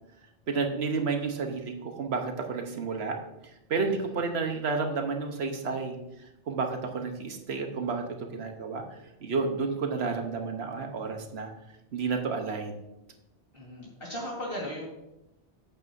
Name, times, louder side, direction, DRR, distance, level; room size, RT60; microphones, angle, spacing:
voice 1, 0.5-3.2 3.7-6.0 6.5-8.0 8.3-8.8 9.2-11.5 11.9-12.9, right 4 dB, 70° right, 4 dB, 1.2 m, -31 dB
voice 2, 13.5-15.0, equal, 55° left, -3 dB, 2.0 m, -37 dB
8.9 x 8.1 x 2.7 m, 0.91 s
omnidirectional pair, 1.1 m